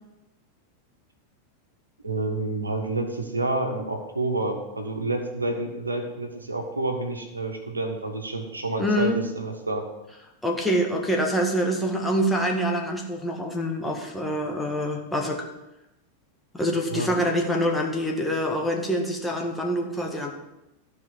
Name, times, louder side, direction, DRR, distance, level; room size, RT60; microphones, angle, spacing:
voice 1, 2.0-9.8 16.9-17.1, right 2 dB, 80° right, 4 dB, 1.5 m, -29 dB
voice 2, 8.8-9.2 10.4-15.5 16.5-20.3, equal, 5° left, 0 dB, 1.8 m, -25 dB
14.0 x 5.0 x 6.9 m, 0.95 s
figure-of-eight pair, 90°, 0 cm